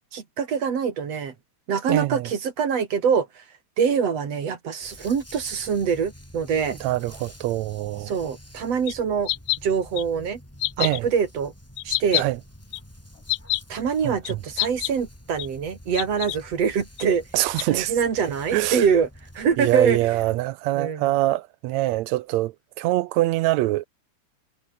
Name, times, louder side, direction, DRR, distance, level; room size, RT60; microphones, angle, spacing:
voice 1, 0.1-1.3 1.7-3.4 3.8-6.8 8.1-9.3 9.6-10.4 10.8-11.5 11.8-12.2 13.7-17.2 17.7-19.1 19.3-20.1 20.8-21.1, right 6 dB, 55° right, 3.4 m, -24 dB
voice 2, 1.9-2.3 6.7-8.1 10.8-11.1 12.1-12.4 14.0-14.4 17.3-17.9 18.5-18.9 19.6-23.8, right 17 dB, 80° right, 1.8 m, -24 dB
Dog, 4.8-20.0, equal, 5° left, 6.8 m, -47 dB
sound 1, 8.9-9.0 9.3-9.6 10.0-10.1 10.6-11.0 11.8-12.2 12.7-12.8 13.3-13.6 14.2-14.3 14.6-14.9 15.4-15.5 15.9-16.4 17.0-17.1 17.6-17.7, left 19 dB, 80° left, 1.8 m, -26 dB
omnidirectional pair, 3.5 m